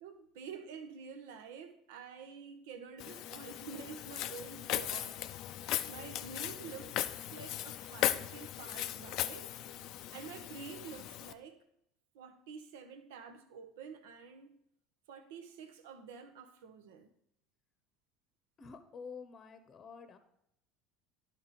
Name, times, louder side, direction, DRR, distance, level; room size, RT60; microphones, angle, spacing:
voice 1, 0.0-5.2 5.9-7.0 7.3-9.8 10.1-11.6 12.1-14.6 15.1-17.1, right 6 dB, 75° right, 0.8 m, -49 dB
Walk footsteps, 3.0-11.3, left 12 dB, 60° left, 0.4 m, -38 dB
voice 2, 18.6-20.2, left 5 dB, 40° left, 0.8 m, -49 dB
11.0 x 4.3 x 4.1 m
hypercardioid pair, 75°, 0 cm